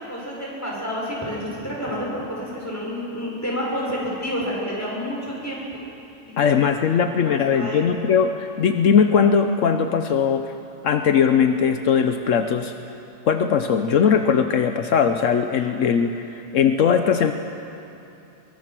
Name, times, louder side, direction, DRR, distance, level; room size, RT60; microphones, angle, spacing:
voice 1, 0.0-5.6 6.4-6.5 7.2-7.8, equal, 10° left, -4 dB, 6.5 m, -29 dB
voice 2, 6.4-10.5 10.8-12.7 13.2-17.3, left 7 dB, 75° left, 7 dB, 1.2 m, -19 dB
24.5 x 22.5 x 6.1 m, 2.9 s
omnidirectional pair, 1.3 m